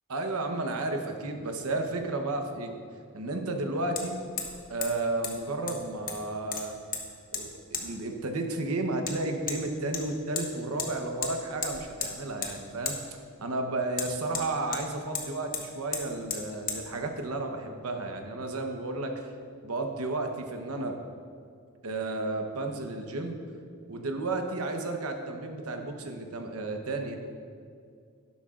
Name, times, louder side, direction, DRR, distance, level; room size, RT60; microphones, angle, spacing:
voice 1, 0.1-2.8 3.1-4.2 4.7-6.8 7.3-19.3 19.6-21.0 21.8-23.4 23.9-27.2, right 2 dB, 90° right, 4 dB, 1.0 m, -32 dB
Hammer, 2.0-2.1 4.0-4.1 4.4-4.6 4.8-4.9 5.2-5.3 5.7-6.2 6.5-7.0 7.3-7.4 7.7-7.9 9.1-9.2 9.5-9.6 9.9-10.5 10.8-10.9 11.2-11.3 11.6-12.1 12.4-12.6 12.9-13.0 14.0-14.8 15.2-15.3 15.5-15.6 15.9-16.0 16.3-16.4 16.7-16.8, left 6 dB, 40° left, 1.1 m, -33 dB
11.5 x 11.5 x 2.5 m, 2.3 s
head